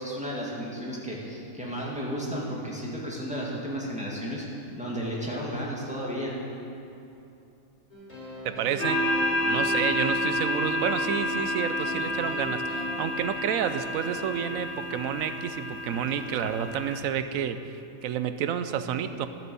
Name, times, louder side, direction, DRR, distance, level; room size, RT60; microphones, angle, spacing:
voice 1, 0.0-6.3, equal, 5° right, -5 dB, 2.0 m, -33 dB
sound 1, 7.9-13.0, left 1 dB, 30° left, 3.7 m, -41 dB
voice 2, 8.4-9.0 9.4-19.3, right 8 dB, 85° right, 10 dB, 1.0 m, -30 dB
sound 2, 8.8-17.0, left 1 dB, 65° left, 2.4 m, -29 dB
12.0 x 7.6 x 6.9 m, 2.8 s
omnidirectional pair, 1.4 m